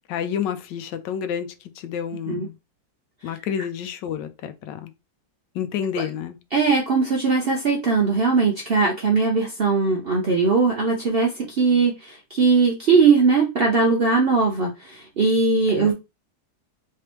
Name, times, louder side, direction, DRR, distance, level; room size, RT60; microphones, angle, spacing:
voice 1, 0.1-2.6 3.2-4.9 5.5-6.4 15.7-15.9, left 8 dB, 85° left, 1.3 m, -29 dB
voice 2, 6.5-15.9, right 4 dB, 60° right, 0.6 m, -20 dB
3.3 x 3.3 x 2.9 m
omnidirectional pair, 1.9 m